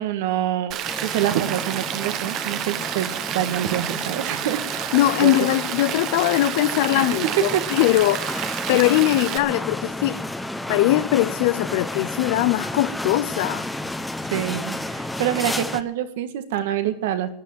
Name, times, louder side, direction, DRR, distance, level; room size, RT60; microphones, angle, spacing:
voice 1, 0.0-4.9 5.2-5.4 7.0-7.2 7.5-7.6 8.4-8.5 14.3-17.3, right 11 dB, 75° right, 1.7 m, -26 dB
Rain, 0.7-9.4, right 11 dB, 45° right, 1.2 m, -30 dB
sound 1, 0.8-15.8, left 1 dB, 5° left, 1.0 m, -32 dB
voice 2, 4.9-10.4 10.7-13.7, left 16 dB, 70° left, 0.5 m, -21 dB
13.5 x 9.6 x 7.5 m
supercardioid pair, 120°, 0 cm